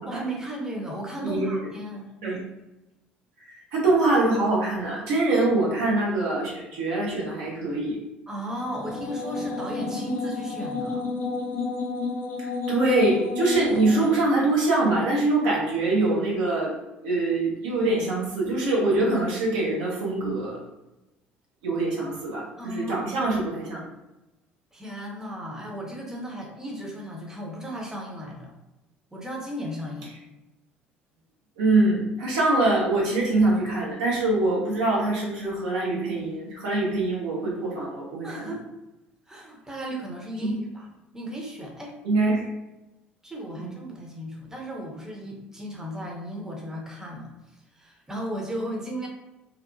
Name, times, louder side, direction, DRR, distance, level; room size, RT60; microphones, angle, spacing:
voice 1, 0.1-2.1 8.3-11.1 22.6-23.3 24.7-28.5 29.1-30.1 38.2-38.6 39.3-40.9 41.1-42.0 43.2-49.1, equal, 10° right, -1 dB, 0.7 m, -35 dB
voice 2, 1.2-1.5 2.2-2.4 3.7-8.0 12.7-16.7 17.0-20.6 21.6-23.8 31.6-38.4 40.4-40.5 42.0-42.5 43.6-43.7, right 2 dB, 70° right, -5 dB, 0.8 m, -24 dB
sound 1, 8.6-14.1, left 3 dB, 40° left, 0.6 m, -31 dB
2.8 x 2.1 x 2.5 m, 0.99 s
hypercardioid pair, 60°, 5 cm